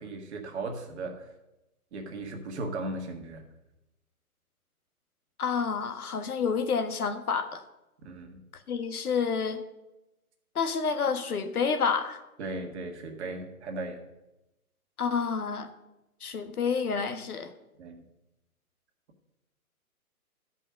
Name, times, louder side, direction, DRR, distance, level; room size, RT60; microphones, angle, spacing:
voice 1, 0.0-1.3 1.9-3.5 8.0-8.4 12.4-14.0 17.8-18.0, right 2 dB, 45° right, 4 dB, 1.8 m, -37 dB
voice 2, 5.4-7.6 8.7-9.6 10.5-12.2 15.0-15.7 16.2-17.5, left 5 dB, 75° left, 8 dB, 1.4 m, -29 dB
12.5 x 5.5 x 6.4 m, 0.96 s
hypercardioid pair, 140°, 45 cm